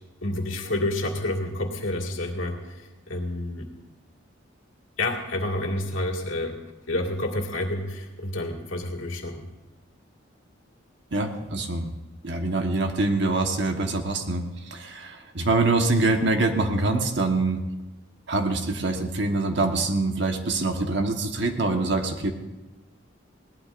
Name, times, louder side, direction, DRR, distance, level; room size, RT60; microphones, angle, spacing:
voice 1, 0.2-3.7 5.0-6.6 6.9-9.5, left 1 dB, 80° left, 2 dB, 2.2 m, -29 dB
voice 2, 11.1-11.9 12.2-14.4 14.7-17.6 18.3-22.3, right 2 dB, 60° right, 4 dB, 1.3 m, -24 dB
21.0 x 17.5 x 2.6 m, 1.1 s
head